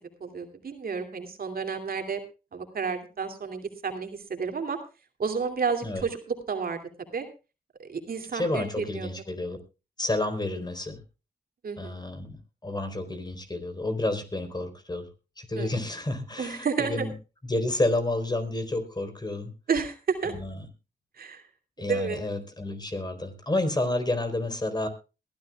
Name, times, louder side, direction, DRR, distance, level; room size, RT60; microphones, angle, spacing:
voice 1, 0.2-2.2 2.5-4.8 5.2-6.8 7.1-7.2 7.8-9.1 11.6-12.0 15.5-15.8 16.4-17.1 19.7-20.3 21.2-21.4 21.8-22.2, right 5 dB, 65° right, 6 dB, 2.7 m, -31 dB
voice 2, 8.3-9.6 10.0-11.0 11.8-12.4 12.6-15.0 15.4-17.1 17.5-19.5 20.2-20.6 21.8-24.9, left 2 dB, 25° left, 8 dB, 4.2 m, -30 dB
21.5 x 13.0 x 2.4 m, 0.31 s
cardioid pair, 50°, 16 cm